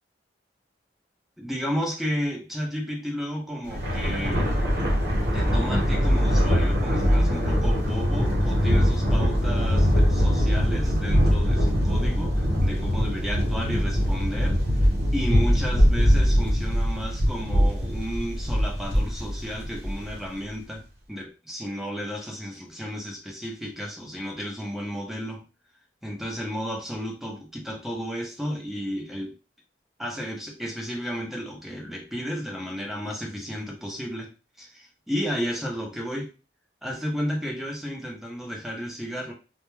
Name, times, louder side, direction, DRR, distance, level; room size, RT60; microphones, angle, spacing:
voice 1, 1.4-4.5 5.3-20.8 21.1-25.4 26.0-29.3 30.0-34.3 34.6-36.3 36.8-39.3, equal, ahead, 0 dB, 0.6 m, -33 dB
Thunder, 3.6-20.3, equal, 55° right, 1.0 m, -22 dB
2.2 x 2.1 x 3.1 m, 0.31 s
head